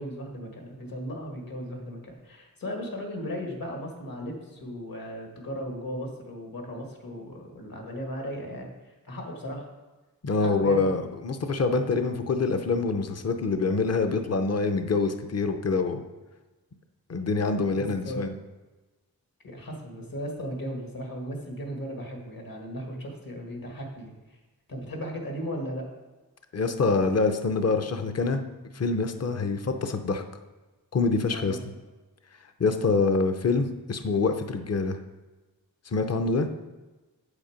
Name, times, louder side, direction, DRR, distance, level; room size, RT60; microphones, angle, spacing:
voice 1, 0.0-9.7 10.4-10.9 17.8-18.3 19.4-24.1 24.7-25.9 31.3-31.6, equal, 65° left, 1 dB, 2.1 m, -36 dB
voice 2, 10.2-16.0 17.1-18.3 26.5-28.4 28.7-30.2 30.9-31.6 32.6-35.0 35.9-36.5, left 3 dB, 45° left, 7 dB, 0.7 m, -25 dB
8.3 x 7.3 x 5.1 m, 1.2 s
wide cardioid pair, 100°, 37 cm